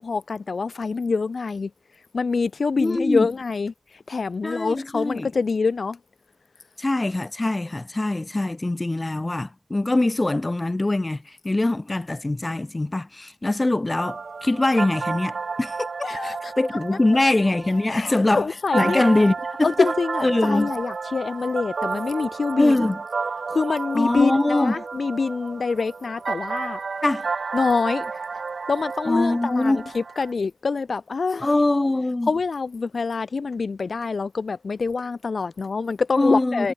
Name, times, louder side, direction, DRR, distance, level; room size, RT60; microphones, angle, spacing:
voice 1, 0.0-1.7 2.1-6.0 16.0-16.5 17.9-19.1 19.6-22.7 23.5-26.8 27.5-28.1 28.7-31.5 32.3-36.7, left 4 dB, 75° left, 1.0 m, -25 dB
voice 2, 2.8-3.3 4.4-5.3 6.8-15.9 16.2-18.5 18.7-19.9 20.2-20.7 22.6-23.0 23.9-24.8 27.0-27.3 29.0-29.9 31.4-32.3 36.2-36.7, left 2 dB, 30° left, 1.3 m, -23 dB
sound 1, 14.0-30.3, right 4 dB, 85° right, 3.2 m, -32 dB
wide cardioid pair, 90°, 0 cm